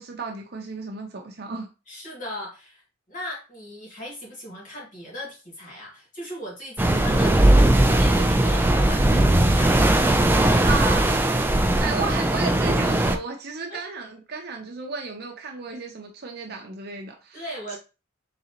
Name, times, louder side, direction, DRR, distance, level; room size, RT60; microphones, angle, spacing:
voice 1, 0.0-1.7 10.6-11.0 11.4-17.4 17.7-17.8, right 4 dB, 55° right, 2 dB, 0.7 m, -33 dB
voice 2, 1.9-2.8 3.1-10.9 13.7-13.8 17.3-17.8, equal, 45° left, -3 dB, 2.0 m, -38 dB
sound 1, 6.8-13.2, right 1 dB, 10° right, 0.4 m, -19 dB
4.0 x 3.8 x 2.9 m, 0.31 s
head